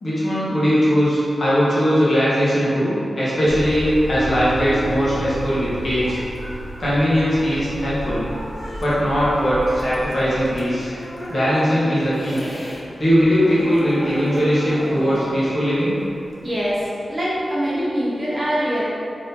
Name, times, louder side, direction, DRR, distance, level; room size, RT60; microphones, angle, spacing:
voice 1, 0.0-6.2 6.8-8.2 8.8-10.9 11.3-12.4 13.0-16.0, equal, 50° left, -10 dB, 1.1 m, -19 dB
sound 1, 3.5-10.6, equal, 80° left, 0.9 m, -33 dB
sound 2, 4.2-12.1, right 2 dB, 90° right, 0.4 m, -36 dB
sound 3, 4.7-12.8 13.1-16.9, equal, 30° left, 0.6 m, -35 dB
voice 2, 16.4-18.8, equal, 30° right, -7 dB, 0.7 m, -23 dB
3.6 x 3.0 x 2.8 m, 2.7 s
wide cardioid pair, 140°, 0 cm